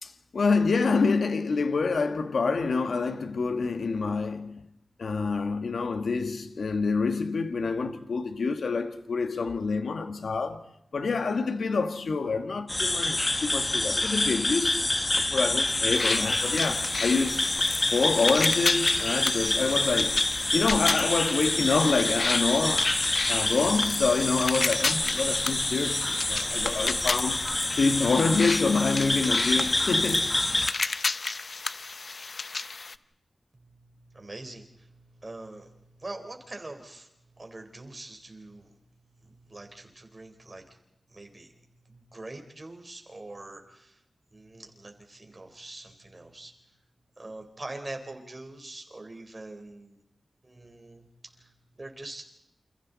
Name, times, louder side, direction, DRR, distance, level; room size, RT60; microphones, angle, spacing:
voice 1, 0.0-4.6 5.0-10.6 10.9-14.9 15.3-17.6 17.9-20.2 20.5-22.9 23.3-27.4 27.8-30.3, left 4 dB, 75° left, 1.8 m, -27 dB
sound 1, 12.7-30.7, left 2 dB, 25° left, 1.3 m, -27 dB
sound 2, 15.9-32.9, left 3 dB, 50° left, 0.8 m, -33 dB
voice 2, 33.5-38.8 39.1-40.6 41.1-41.6 41.8-44.0 44.3-46.5 47.2-50.0 50.4-51.1 51.4-52.2, right 2 dB, 30° right, 4.3 m, -44 dB
29.0 x 28.0 x 4.2 m
wide cardioid pair, 90°, 0 cm